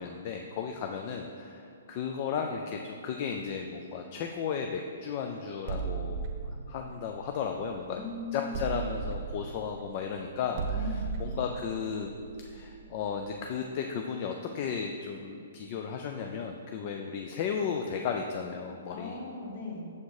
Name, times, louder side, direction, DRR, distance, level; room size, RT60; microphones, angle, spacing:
voice 1, 0.0-6.3 6.7-8.0 8.3-12.1 12.5-19.2, left 6 dB, 30° left, 3 dB, 0.4 m, -34 dB
sound 1, 5.7-8.0 8.5-13.2, right 5 dB, 30° right, 0.9 m, -36 dB
voice 2, 7.9-8.7 10.7-11.1 18.9-19.9, left 3 dB, 50° left, 1 dB, 1.5 m, -38 dB
7.0 x 6.5 x 4.8 m, 2.6 s
hypercardioid pair, 170°, 0 cm